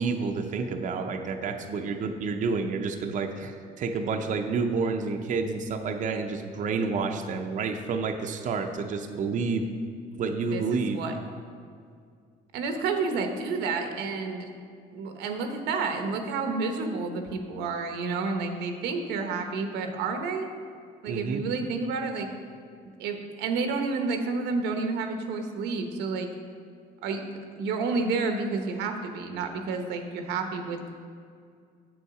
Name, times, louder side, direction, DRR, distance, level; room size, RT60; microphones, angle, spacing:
voice 1, 0.0-9.7 10.2-11.0 21.1-21.4, right 4 dB, 50° right, 4 dB, 0.6 m, -29 dB
voice 2, 10.5-11.1 12.5-14.5 14.9-20.5 21.0-22.3 23.0-26.3 27.0-27.2 27.6-31.0, right 4 dB, 90° right, 5 dB, 0.9 m, -30 dB
7.9 x 7.0 x 4.8 m, 2.2 s
cardioid pair, 110°, 17 cm